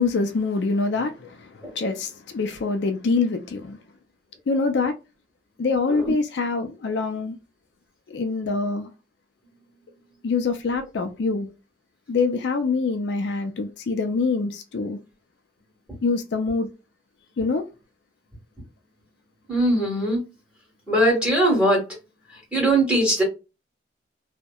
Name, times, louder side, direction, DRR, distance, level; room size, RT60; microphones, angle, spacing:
voice 1, 0.0-3.8 4.5-4.9 5.6-7.4 8.1-8.9 10.2-11.5 12.1-15.0 16.0-16.7 17.4-17.7, left 4 dB, 65° left, 0.4 m, -25 dB
voice 2, 19.5-20.2 20.9-21.8 22.5-23.2, right 1 dB, 5° right, 1.4 m, -20 dB
2.7 x 2.1 x 2.2 m
head